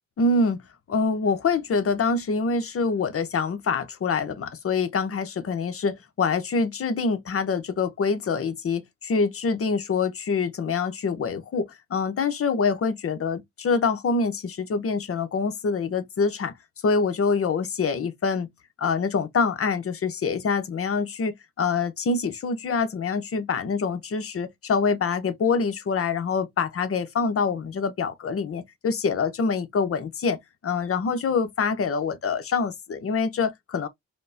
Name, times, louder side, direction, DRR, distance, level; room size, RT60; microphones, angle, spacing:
voice 1, 0.2-0.6 0.9-16.5 16.8-18.5 18.8-30.4 30.6-33.9, left 4 dB, 50° left, 0.8 m, -25 dB
4.9 x 2.1 x 2.6 m
cardioid pair, 75°, 30 cm